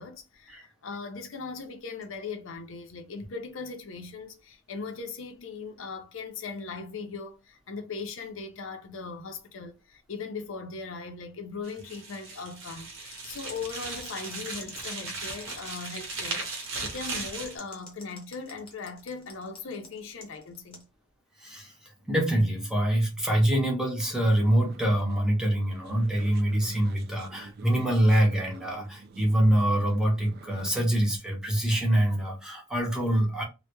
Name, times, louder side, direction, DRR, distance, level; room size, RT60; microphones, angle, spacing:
voice 1, 0.0-20.9, left 4 dB, 70° left, 0.5 m, -39 dB
sound 1, 11.6-17.6, right 3 dB, 70° right, 0.8 m, -37 dB
sound 2, 13.0-20.8, left 3 dB, 25° left, 0.8 m, -48 dB
voice 2, 21.4-21.7 22.1-33.4, right 1 dB, 5° right, 0.5 m, -25 dB
sound 3, 24.3-30.9, right 3 dB, 50° right, 0.3 m, -47 dB
2.2 x 2.1 x 2.9 m
head